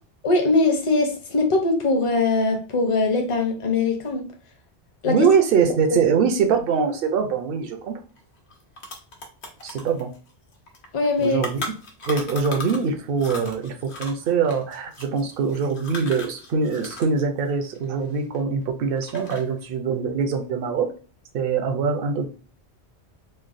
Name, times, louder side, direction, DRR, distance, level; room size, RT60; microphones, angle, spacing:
voice 1, 0.2-4.3 5.0-5.2 10.9-11.4, left 3 dB, 35° left, 0.6 m, -21 dB
voice 2, 5.1-8.0 9.6-10.1 11.2-11.6 12.1-20.9 21.3-22.3, right 5 dB, 65° right, 0.7 m, -23 dB
sound 1, 8.2-8.3 8.5-12.9 13.2-17.2 17.5-18.6 19.0-19.6, left 3 dB, 80° left, 1.0 m, -37 dB
3.2 x 2.1 x 2.4 m
omnidirectional pair, 1.1 m